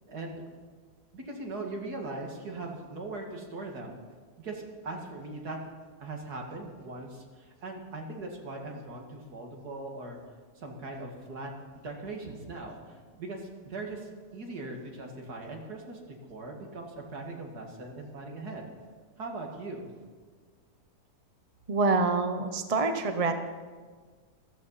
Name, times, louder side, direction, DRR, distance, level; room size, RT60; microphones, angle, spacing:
voice 1, 0.1-0.4 1.1-4.0 4.4-5.6 6.0-10.2 10.6-11.5 11.8-16.0 16.3-18.7 19.2-19.9, right 2 dB, 80° right, 1 dB, 2.7 m, -40 dB
voice 2, 21.7-23.4, right 3 dB, 30° right, 7 dB, 0.7 m, -26 dB
15.0 x 14.0 x 5.7 m, 1.5 s
omnidirectional pair, 1.6 m